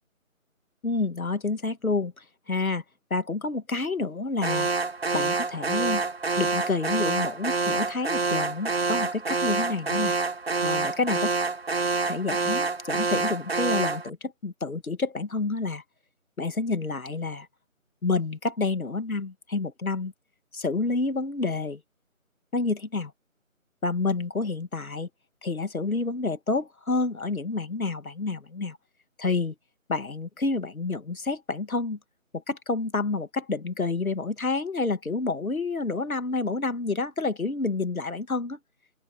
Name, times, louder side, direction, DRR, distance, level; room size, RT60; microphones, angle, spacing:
voice 1, 0.8-2.8 3.1-4.7 5.1-6.0 6.4-10.1 10.6-11.3 12.0-15.8 16.4-17.5 18.0-20.1 20.5-21.8 22.5-23.1 23.8-25.1 25.4-28.8 29.2-29.5 29.9-32.0 32.3-38.6, left 3 dB, 90° left, 2.2 m, -29 dB
Alarm, 4.4-14.1, right 4 dB, 45° right, 0.7 m, -27 dB
open air
figure-of-eight pair, 170°, 41 cm